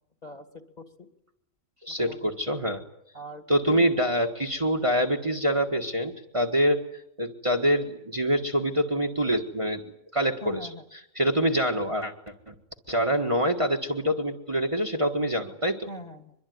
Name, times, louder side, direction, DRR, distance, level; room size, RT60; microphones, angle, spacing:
voice 1, 0.8-1.1 1.9-2.3 3.1-3.9 10.4-10.8 15.9-16.3, left 1 dB, 35° left, 7 dB, 2.6 m, -41 dB
voice 2, 1.8-2.8 3.5-6.8 7.2-9.8 10.1-10.7 11.1-12.1 12.5-12.6 12.9-15.9, equal, 25° right, 2 dB, 1.7 m, -25 dB
23.5 x 23.0 x 9.4 m, 0.77 s
omnidirectional pair, 1.3 m